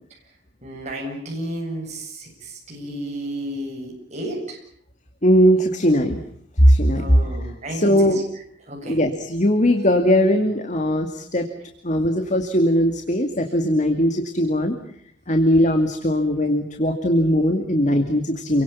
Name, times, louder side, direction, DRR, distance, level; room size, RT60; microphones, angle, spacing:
voice 1, 0.6-4.6 6.9-8.2 8.7-9.0, right 1 dB, 40° right, -1 dB, 7.9 m, -32 dB
voice 2, 5.2-6.2 6.6-7.2 7.7-8.2 8.9-11.5 11.8-14.8 15.3-18.6, equal, 40° left, 6 dB, 2.3 m, -19 dB
29.0 x 23.5 x 7.1 m, 0.67 s
head